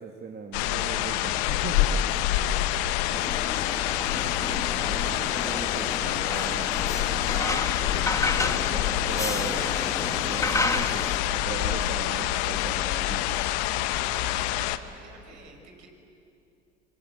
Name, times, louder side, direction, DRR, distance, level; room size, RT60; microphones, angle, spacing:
voice 1, 0.0-2.3 3.0-3.1 4.1-13.4, right 5 dB, 30° right, 3 dB, 2.1 m, -39 dB
sound 1, 0.5-14.8, left 13 dB, 70° left, 1.1 m, -27 dB
voice 2, 2.3-2.8 3.1-3.5 14.0-15.9, right 4 dB, 55° right, 4 dB, 5.8 m, -48 dB
sound 2, 3.1-11.2, left 2 dB, 10° left, 1.5 m, -32 dB
26.0 x 25.0 x 8.0 m, 2.6 s
hypercardioid pair, 70°, 34 cm